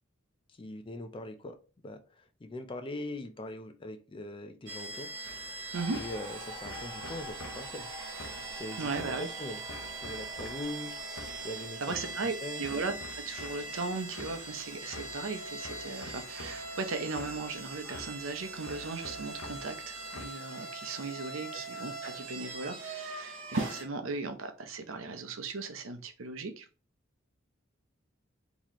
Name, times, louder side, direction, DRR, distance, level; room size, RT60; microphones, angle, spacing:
voice 1, 0.6-5.1 5.9-7.9 8.6-9.6 10.0-11.0 11.4-12.0 12.4-12.6 21.5-21.6, left 1 dB, 25° left, 0.4 m, -41 dB
sound 1, 4.7-23.8, right 3 dB, 65° right, 1.4 m, -42 dB
sound 2, 5.2-20.3, left 2 dB, 85° left, 0.7 m, -49 dB
sound 3, 5.7-11.7, equal, 20° right, 1.0 m, -47 dB
voice 2, 8.8-9.3 11.8-12.9 13.3-26.7, right 3 dB, 85° right, 0.7 m, -37 dB
4.1 x 3.0 x 3.0 m
head